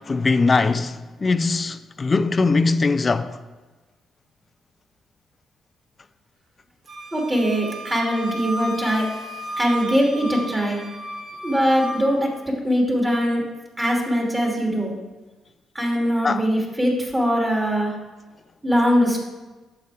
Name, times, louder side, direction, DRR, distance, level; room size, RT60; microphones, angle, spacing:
voice 1, 0.0-3.4 16.2-16.4, left 3 dB, 35° left, 0.5 m, -21 dB
Wind instrument woodwind instrument, 6.9-12.1, equal, 55° right, 2.5 m, -33 dB
voice 2, 7.1-9.1 9.6-10.8 11.4-13.4 13.8-14.9 15.7-17.9 18.6-19.2, equal, 15° right, 3.0 m, -21 dB
11.5 x 7.2 x 3.5 m
supercardioid pair, 65°, 0 cm